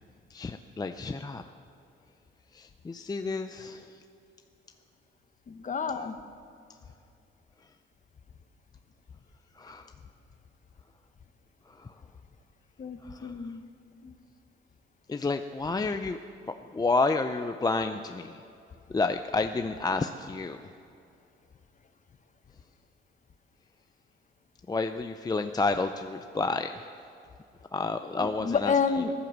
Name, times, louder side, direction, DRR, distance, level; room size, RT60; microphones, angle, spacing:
voice 1, 0.3-1.4 2.5-3.9 9.6-9.9 11.8-11.9 13.0-13.3 15.1-16.2 16.7-18.4 18.9-20.6 24.7-26.8 27.7-28.7, left 3 dB, 20° left, 8 dB, 0.5 m, -30 dB
voice 2, 5.5-6.2 12.8-13.6 14.0-14.1 28.1-29.1, left 5 dB, 40° left, 9 dB, 1.1 m, -29 dB
15.5 x 11.0 x 7.3 m, 2.5 s
cardioid pair, 90°, 20 cm